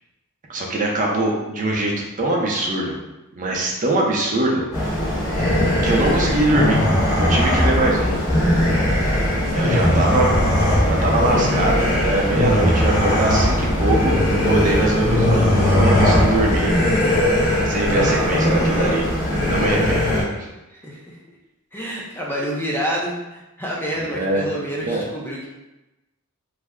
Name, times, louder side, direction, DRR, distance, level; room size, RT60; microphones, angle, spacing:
voice 1, 0.5-1.9 2.2-2.9 3.3-4.9 5.8-6.8 7.2-8.2 9.5-10.3 10.6-14.2 14.4-16.8 17.6-19.1 19.4-20.5 24.0-24.4 24.8-25.1, right 2 dB, 35° right, -2 dB, 0.6 m, -22 dB
sound 1, 4.7-20.2, left 1 dB, 45° left, 1.2 m, -19 dB
voice 2, 20.7-21.2 21.7-25.5, equal, 10° left, -4 dB, 0.5 m, -28 dB
3.2 x 2.1 x 3.5 m, 0.99 s
head